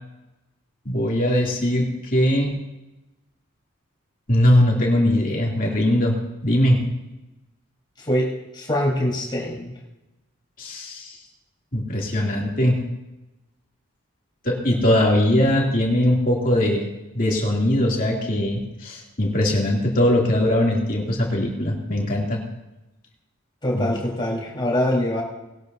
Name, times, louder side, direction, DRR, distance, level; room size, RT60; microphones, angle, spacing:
voice 1, 0.9-2.6 4.3-6.2 6.4-6.8 10.6-11.1 11.7-12.8 14.4-16.9 17.1-22.4 23.7-23.9, left 1 dB, 40° left, -2 dB, 2.8 m, -20 dB
voice 2, 8.0-9.7 23.6-25.2, left 1 dB, 20° left, -4 dB, 4.2 m, -24 dB
20.0 x 12.0 x 2.7 m, 0.99 s
head